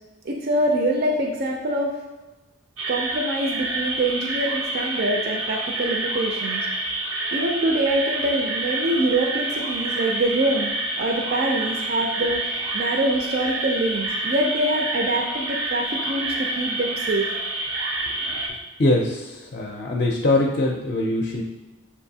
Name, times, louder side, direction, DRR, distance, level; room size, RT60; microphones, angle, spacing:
voice 1, 0.2-1.9 2.9-6.7 7.3-17.3, right 1 dB, 45° right, 1 dB, 0.4 m, -24 dB
sound 1, 2.8-18.5, right 2 dB, 85° right, 0.8 m, -28 dB
voice 2, 18.8-21.4, left 2 dB, 40° left, 0 dB, 0.4 m, -22 dB
7.1 x 2.6 x 2.7 m, 1.1 s
head